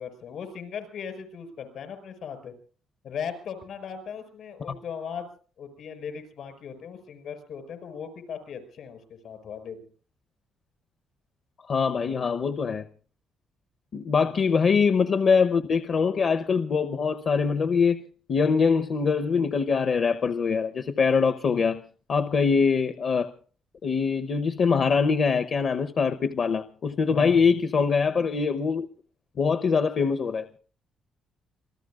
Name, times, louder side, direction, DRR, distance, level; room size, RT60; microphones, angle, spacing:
voice 1, 0.0-2.5 3.0-5.3 5.6-9.9 14.2-14.4 27.1-27.6, left 7 dB, 70° left, 5.7 m, -38 dB
voice 2, 11.7-12.8 13.9-18.0 18.3-21.8 22.1-23.3 23.8-28.9 29.4-30.5, left 5 dB, 50° left, 0.9 m, -23 dB
27.5 x 19.5 x 2.5 m
cardioid pair, 90°, 0 cm